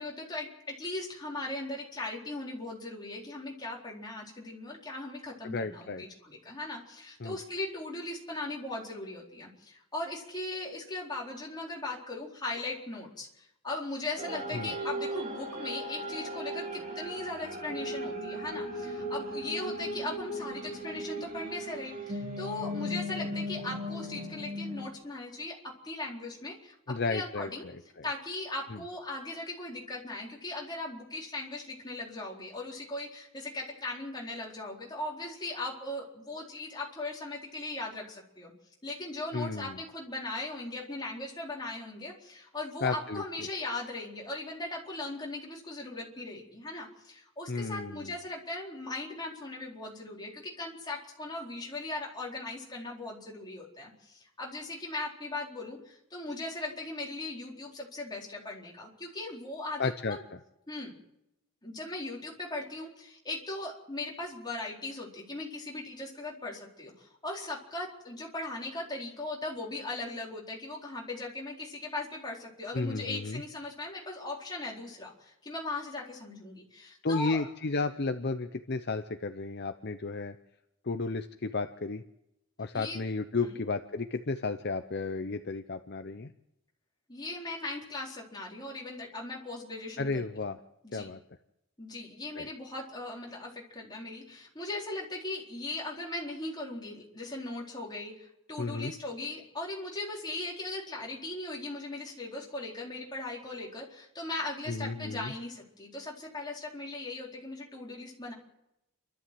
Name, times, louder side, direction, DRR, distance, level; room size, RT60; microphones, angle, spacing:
voice 1, 0.0-25.6 25.8-26.7 27.0-27.7 28.0-38.5 38.8-60.2 60.7-60.9 61.6-77.5 82.7-83.1 83.4-83.6 87.1-90.2 90.8-91.1 91.8-108.3, left 2 dB, 20° left, -3 dB, 4.2 m, -39 dB
voice 2, 5.4-6.0 7.2-7.4 14.5-14.7 26.9-27.7 28.7-28.8 39.3-39.8 42.8-43.2 47.5-48.1 59.8-60.2 72.7-73.4 77.0-80.3 80.8-82.0 82.6-86.3 90.0-90.6 90.9-91.2 92.4-92.5 98.6-98.9 104.7-105.3, left 3 dB, 50° left, 9 dB, 0.7 m, -33 dB
sound 1, 14.2-24.9, equal, 40° right, 4.4 m, -37 dB
29.0 x 13.0 x 7.7 m, 0.87 s
head